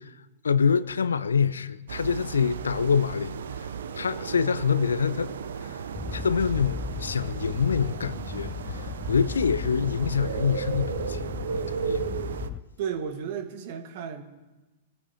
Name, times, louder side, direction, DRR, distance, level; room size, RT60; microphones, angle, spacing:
voice 1, 0.4-3.4 3.9-5.3 5.6-5.8 6.1-12.1, left 6 dB, 75° left, 0.5 m, -26 dB
sound 1, 1.9-12.5, right 7 dB, 65° right, 0.6 m, -35 dB
sound 2, 5.9-12.6, left 7 dB, 20° left, 0.4 m, -37 dB
voice 2, 12.8-14.2, right 7 dB, 50° right, 1.5 m, -33 dB
22.0 x 15.0 x 2.9 m
figure-of-eight pair, 100°, 0 cm